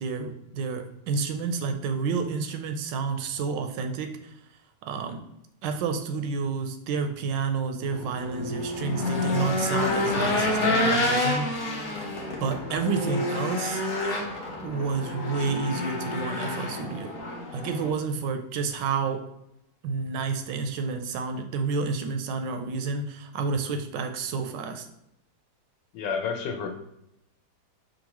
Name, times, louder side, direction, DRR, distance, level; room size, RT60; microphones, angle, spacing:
voice 1, 0.0-4.2 4.8-5.2 5.6-11.7 12.4-13.8 14.6-17.2 17.5-19.3 19.8-24.9, right 5 dB, 80° right, 6 dB, 1.2 m, -30 dB
Race car auto racing / Engine, 7.8-17.9, left 2 dB, 45° left, 0.8 m, -28 dB
voice 2, 25.9-26.7, left 6 dB, 80° left, 4 dB, 1.3 m, -30 dB
5.3 x 2.6 x 2.9 m, 0.81 s
omnidirectional pair, 1.9 m